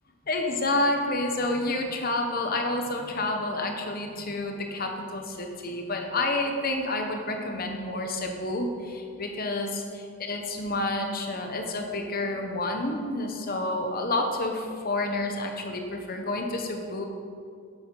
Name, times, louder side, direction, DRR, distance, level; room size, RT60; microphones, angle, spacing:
voice 1, 0.3-17.0, left 2 dB, 40° left, 3 dB, 1.2 m, -29 dB
10.5 x 8.9 x 4.8 m, 2.4 s
head